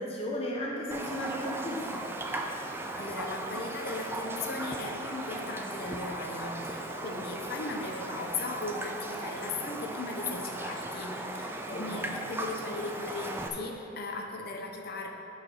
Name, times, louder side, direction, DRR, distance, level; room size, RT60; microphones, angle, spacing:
voice 1, 0.0-2.0 7.1-7.2 11.6-11.9, equal, 30° left, -3 dB, 1.3 m, -35 dB
Raindrop, 0.9-13.5, right 2 dB, 10° right, 0.4 m, -37 dB
voice 2, 2.5-15.1, left 3 dB, 55° left, 2 dB, 0.8 m, -38 dB
7.0 x 5.1 x 6.3 m, 2.8 s
head